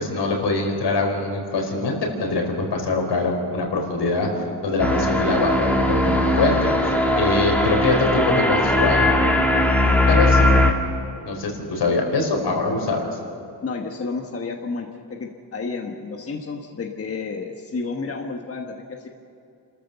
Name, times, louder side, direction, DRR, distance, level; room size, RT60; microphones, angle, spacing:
voice 1, 0.0-4.3 4.6-6.6 7.2-9.1 10.1-10.5 11.2-13.1, left 3 dB, 70° left, 2 dB, 4.7 m, -23 dB
sound 1, 4.8-10.7, left 1 dB, 5° left, 2.2 m, -19 dB
voice 2, 13.6-19.1, left 4 dB, 35° left, 2 dB, 1.4 m, -31 dB
29.0 x 14.0 x 7.0 m, 2.7 s
cardioid pair, 120°, 42 cm